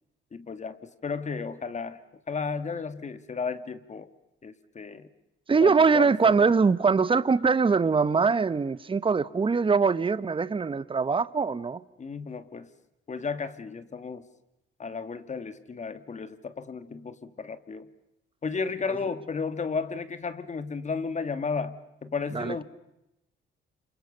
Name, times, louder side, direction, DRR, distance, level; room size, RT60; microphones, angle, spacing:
voice 1, 0.3-2.0 2.3-4.1 4.4-5.1 5.6-6.5 12.0-12.7 13.1-14.3 14.8-17.9 18.4-22.6, left 5 dB, 35° left, 2.0 m, -33 dB
voice 2, 5.5-11.8 22.3-22.5, right 5 dB, 25° right, 1.1 m, -23 dB
29.5 x 27.0 x 6.8 m
cardioid pair, 90°, 20 cm